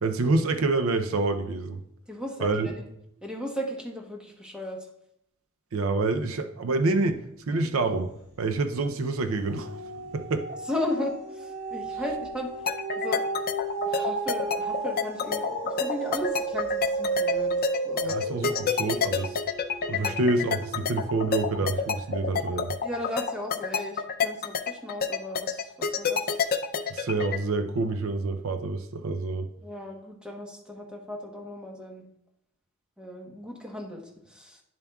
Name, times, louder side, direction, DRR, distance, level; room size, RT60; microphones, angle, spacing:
voice 1, 0.0-1.8 2.4-2.7 5.7-7.2 7.5-8.1 8.4-9.7 10.1-10.5 18.0-19.4 19.9-22.7 26.9-29.5, right 3 dB, 65° right, 0.5 m, -27 dB
voice 2, 2.1-2.8 3.2-4.9 10.7-12.5 13.0-13.2 13.8-17.5 17.8-18.2 20.0-20.4 22.8-26.4 29.6-32.0 33.0-34.6, left 1 dB, 5° right, 1.0 m, -36 dB
sound 1, 8.0-8.5 8.9-21.4 21.9-22.0, right 3 dB, 50° right, 2.1 m, -33 dB
sound 2, 12.7-27.4, left 6 dB, 45° left, 0.5 m, -27 dB
10.5 x 7.1 x 2.3 m
head